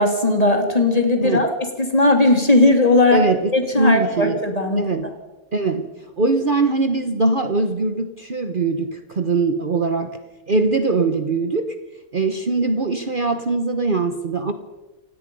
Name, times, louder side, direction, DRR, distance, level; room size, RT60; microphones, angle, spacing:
voice 1, 0.0-1.5 1.8-3.3 3.5-4.9, left 2 dB, 25° left, 4 dB, 2.9 m, -17 dB
voice 2, 3.1-4.4 4.8-5.1 5.5-5.9 6.2-10.1 10.5-11.8 12.1-14.5, right 3 dB, 40° right, 7 dB, 1.2 m, -21 dB
28.5 x 17.0 x 5.5 m, 1.2 s
omnidirectional pair, 1.5 m